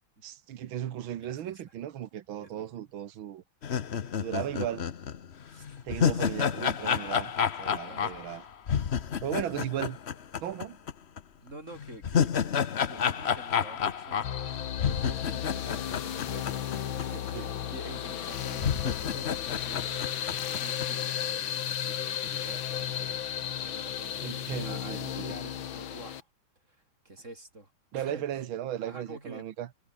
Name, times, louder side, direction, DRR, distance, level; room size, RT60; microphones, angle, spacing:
voice 1, 0.2-3.4 4.2-4.9 5.8-7.3 7.6-8.4 9.2-10.0 10.4-10.8 17.3-17.5 24.2-25.3 27.9-29.7, right 11 dB, 75° right, 1.9 m, -36 dB
voice 2, 1.2-1.7 2.4-2.8 4.5-4.6 5.5-5.8 6.1-6.4 7.8-8.2 9.3-9.5 10.4-10.6 11.4-12.3 12.8-14.2 14.8-23.3 23.6-24.4 24.6-26.3 26.7-28.4 28.8-29.5, right 2 dB, 35° right, 4.8 m, -48 dB
sound 1, 3.6-10.9 11.2-11.3 11.8-17.0 17.3-17.4 18.1-18.2 18.6-20.9, left 7 dB, 45° left, 0.9 m, -30 dB
sound 2, 14.2-26.2, left 10 dB, 75° left, 2.0 m, -34 dB
omnidirectional pair, 2.2 m